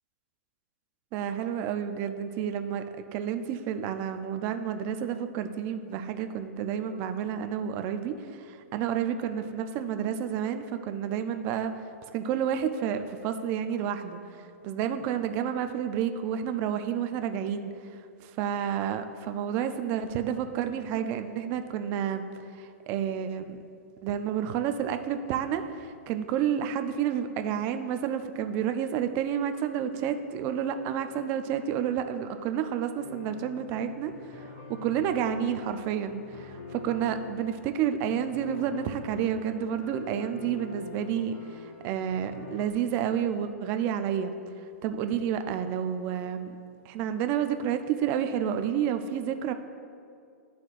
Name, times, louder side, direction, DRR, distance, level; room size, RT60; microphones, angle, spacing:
voice 1, 1.1-2.9 3.1-11.7 12.1-23.6 24.0-44.3 44.8-46.5 46.9-49.5, right 9 dB, 25° right, 8 dB, 0.3 m, -30 dB
sound 1, 33.0-42.7, left 5 dB, 40° left, 0.8 m, -45 dB
11.5 x 4.2 x 2.4 m, 2.4 s
hypercardioid pair, 155°, 8 cm